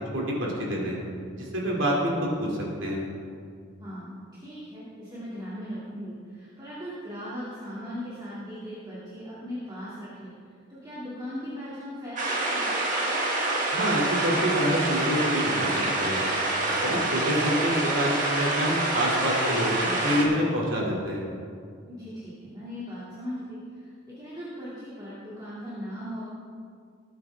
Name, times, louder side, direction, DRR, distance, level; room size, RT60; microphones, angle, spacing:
voice 1, 0.1-1.0 1.3-2.5 2.8-3.0 13.7-15.7 16.0-16.2 16.8-21.2, equal, 65° right, -3 dB, 2.8 m, -27 dB
voice 2, 3.8-10.3 10.7-12.7 16.8-17.4 21.9-26.2, equal, 20° right, -10 dB, 2.6 m, -38 dB
sound 1, 12.2-20.2, right 2 dB, 40° right, 2.0 m, -27 dB
20.0 x 8.9 x 3.6 m, 2.2 s
head